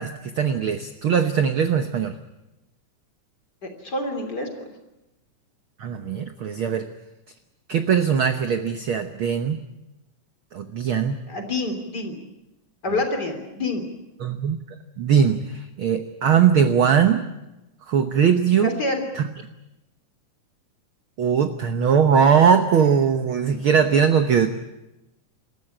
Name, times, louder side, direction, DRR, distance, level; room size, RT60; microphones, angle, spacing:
voice 1, 0.0-2.2 5.8-6.9 7.7-9.6 10.5-11.2 14.2-14.6 15.0-17.3 17.9-18.7 19.2-19.3 21.2-24.5, right 7 dB, 65° right, 8 dB, 1.3 m, -20 dB
voice 2, 3.6-4.7 11.3-12.2 12.8-13.9 18.6-19.0, left 2 dB, 30° left, 5 dB, 3.6 m, -27 dB
27.5 x 14.5 x 10.0 m, 0.99 s
omnidirectional pair, 3.6 m